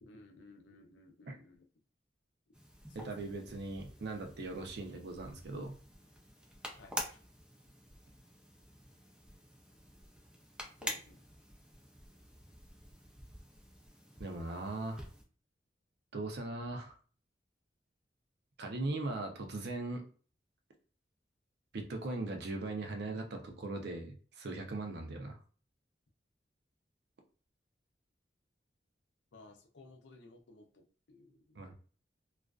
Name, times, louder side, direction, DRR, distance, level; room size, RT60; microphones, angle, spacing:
voice 1, 0.0-1.7 2.9-3.3 6.8-7.2 10.8-11.2 29.3-31.7, left 2 dB, 75° left, 3 dB, 0.5 m, -57 dB
sound 1, 2.5-15.2, equal, 5° right, 0.4 m, -48 dB
voice 2, 2.9-5.8 14.2-15.1 16.1-17.0 18.6-20.0 21.7-25.4 31.5-31.7, right 2 dB, 65° right, 4 dB, 0.5 m, -39 dB
2.4 x 2.3 x 2.3 m, 0.39 s
head